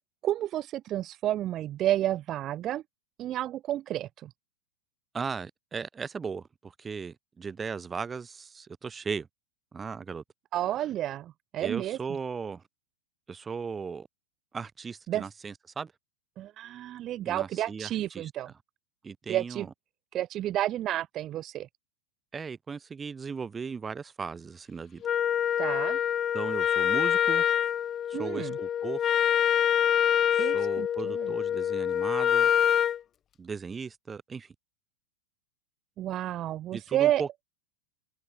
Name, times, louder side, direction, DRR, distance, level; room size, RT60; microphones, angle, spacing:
voice 1, 0.2-2.8 3.2-4.3 10.5-12.0 15.1-15.3 16.4-18.5 19.3-19.7 20.1-21.7 25.6-26.0 28.1-28.6 30.4-31.3 36.0-37.2, right 13 dB, 30° right, 2.7 m, -31 dB
voice 2, 5.1-9.3 9.7-10.2 11.6-12.6 13.3-14.1 14.5-15.9 17.2-18.3 19.0-19.7 22.3-25.0 26.3-27.4 28.1-29.3 30.3-32.5 33.4-34.5 36.7-37.3, right 5 dB, 15° right, 3.8 m, -37 dB
Wind instrument woodwind instrument, 25.0-33.0, left 9 dB, 25° left, 0.3 m, -25 dB
figure-of-eight pair, 90°, 0 cm